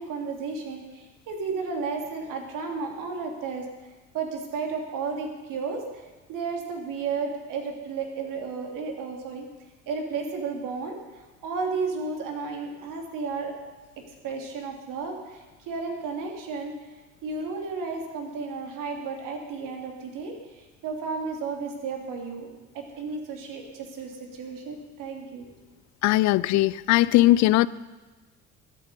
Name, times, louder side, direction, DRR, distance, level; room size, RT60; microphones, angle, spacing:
voice 1, 0.0-3.6 4.1-6.0 6.3-9.5 9.9-13.5 14.2-16.9 17.2-22.5 22.7-25.5, right 4 dB, 55° right, 2.9 m, -33 dB
voice 2, 26.0-27.7, left 17 dB, 50° left, 0.5 m, -19 dB
21.0 x 8.5 x 5.4 m
figure-of-eight pair, 50°, 38 cm